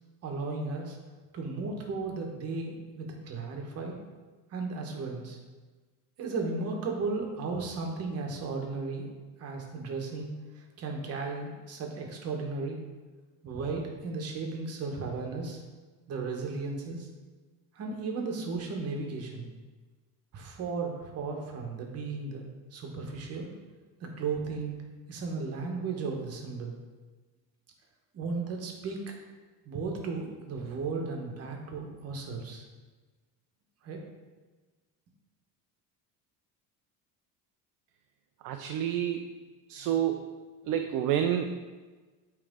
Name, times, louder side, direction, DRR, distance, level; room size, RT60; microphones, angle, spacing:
voice 1, 0.2-1.0 1.3-4.0 4.5-5.4 6.2-9.1 9.4-10.3 10.6-12.8 13.4-15.6 16.1-17.1 17.7-19.4 20.3-23.5 24.0-24.7 25.1-26.7 28.1-29.0 29.6-32.6 33.8-34.0, right 4 dB, 40° right, 1 dB, 1.1 m, -35 dB
voice 2, 38.4-39.2 39.7-40.2 40.7-41.6, right 10 dB, 60° right, 5 dB, 0.5 m, -28 dB
8.8 x 3.3 x 3.6 m, 1.3 s
cardioid pair, 160°, 37 cm